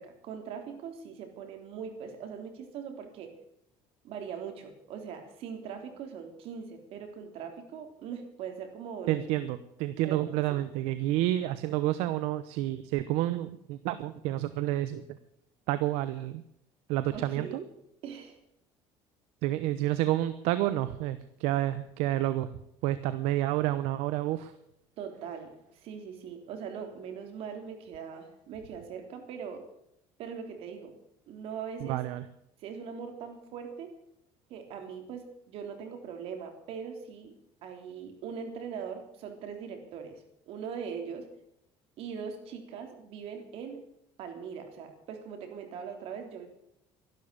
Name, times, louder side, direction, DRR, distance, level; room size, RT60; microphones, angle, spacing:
voice 1, 0.0-3.3 4.0-9.2 10.0-10.2 10.5-10.6 17.1-17.7 18.0-18.4 25.0-29.7 30.2-30.9 31.3-32.0 32.6-33.9 34.5-37.4 37.6-41.3 42.0-43.8 44.2-46.5, right 7 dB, 65° right, 5 dB, 3.5 m, -41 dB
voice 2, 9.1-15.0 15.7-16.4 16.9-17.5 19.4-22.5 22.8-24.5 31.8-32.2, right 14 dB, 85° right, 13 dB, 0.9 m, -29 dB
13.0 x 12.0 x 8.5 m, 0.79 s
cardioid pair, 120°, 10 cm